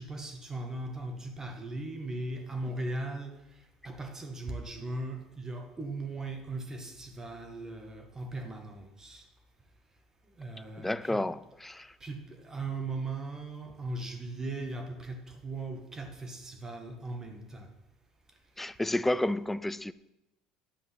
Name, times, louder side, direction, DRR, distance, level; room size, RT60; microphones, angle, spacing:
voice 1, 0.0-3.4 3.8-9.3 10.4-11.2 12.0-17.7, right 2 dB, 25° right, 1.7 m, -38 dB
voice 2, 10.8-12.0 18.6-19.9, left 1 dB, 10° left, 0.5 m, -31 dB
10.5 x 8.3 x 5.7 m
hypercardioid pair, 75°, 2 cm